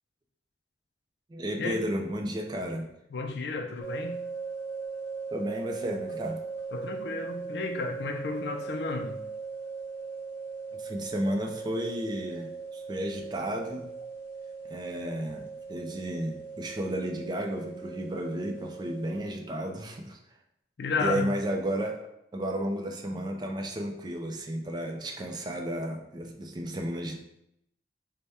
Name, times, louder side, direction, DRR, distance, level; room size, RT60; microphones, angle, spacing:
voice 1, 1.3-2.9 5.3-6.4 10.8-13.9 14.7-20.2 21.0-22.0 22.3-27.1, right 1 dB, 25° right, 3 dB, 0.4 m, -33 dB
voice 2, 3.1-4.2 6.7-9.2 20.8-21.4, left 4 dB, 70° left, 4 dB, 0.4 m, -32 dB
sound 1, 3.8-19.3, right 5 dB, 50° left, 0.8 m, -39 dB
3.4 x 2.1 x 4.1 m, 0.79 s
head